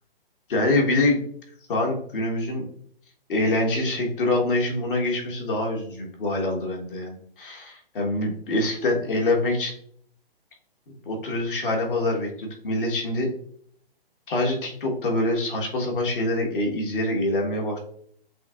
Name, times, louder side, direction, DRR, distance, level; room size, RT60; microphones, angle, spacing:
voice 1, 0.5-1.2 1.7-2.7 3.3-9.7 11.0-13.3 14.3-17.8, left 2 dB, 60° left, 0 dB, 1.4 m, -25 dB
7.5 x 2.8 x 2.5 m, 0.64 s
hypercardioid pair, 140°, 30 cm